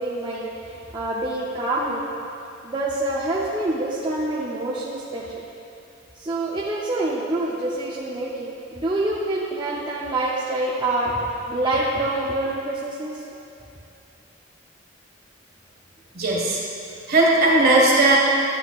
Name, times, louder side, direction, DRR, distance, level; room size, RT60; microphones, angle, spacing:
voice 1, 0.0-2.1 2.6-5.4 6.2-13.2, right 2 dB, 25° right, -7 dB, 0.6 m, -26 dB
voice 2, 16.1-16.6 17.1-18.2, right 2 dB, 55° right, -4 dB, 1.6 m, -17 dB
11.0 x 7.9 x 2.4 m, 2.6 s
head